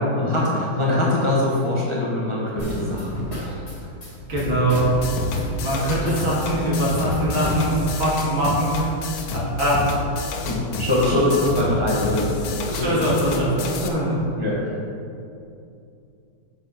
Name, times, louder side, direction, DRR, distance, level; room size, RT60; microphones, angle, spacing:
voice 1, 0.2-3.6 10.4-13.0 14.4-14.8, left 1 dB, 20° left, -5 dB, 1.0 m, -23 dB
sound 1, 2.6-8.1, equal, 35° left, 2.5 m, -31 dB
voice 2, 4.3-4.8 5.6-8.9 9.3-10.1 12.7-13.6 13.8-14.2, right 1 dB, 80° right, -6 dB, 3.0 m, -22 dB
sound 2, 4.7-13.9, left 3 dB, 85° left, 1.6 m, -30 dB
7.2 x 6.1 x 5.8 m, 2.6 s
omnidirectional pair, 2.2 m